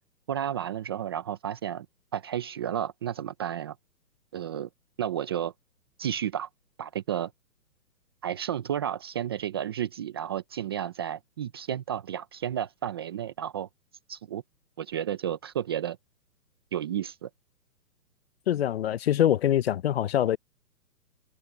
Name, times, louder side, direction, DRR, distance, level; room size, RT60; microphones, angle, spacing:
voice 1, 0.3-1.9 2.1-3.8 4.3-4.7 5.0-5.5 6.0-6.5 6.8-7.3 8.2-13.7 14.1-14.4 14.8-16.0 16.7-17.3, right 10 dB, 15° right, 0.6 m, -32 dB
voice 2, 18.5-20.4, left 11 dB, 40° left, 0.8 m, -24 dB
hypercardioid pair, 145°, 50 cm